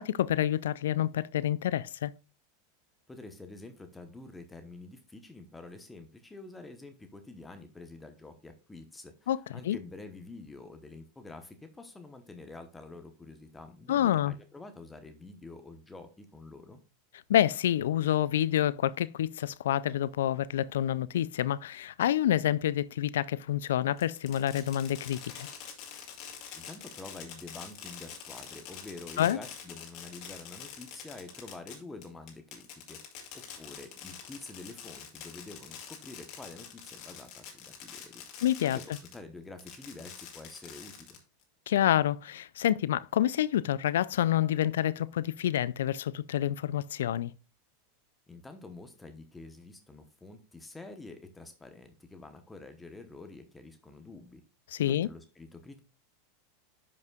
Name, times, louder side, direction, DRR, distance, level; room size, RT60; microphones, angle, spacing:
voice 1, 0.0-2.1 9.3-9.4 9.6-9.8 13.9-14.3 17.3-25.5 29.2-29.4 38.4-38.8 41.7-47.3 54.7-55.1, left 11 dB, 80° left, 0.3 m, -28 dB
voice 2, 3.1-16.8 26.6-33.0 33.3-38.2 38.6-41.2 48.3-54.4 54.8-55.8, left 3 dB, 10° left, 0.9 m, -47 dB
Fireworks, 24.0-39.2 39.6-41.4, left 8 dB, 55° left, 2.1 m, -46 dB
10.5 x 5.4 x 2.3 m
hypercardioid pair, 110°, 0 cm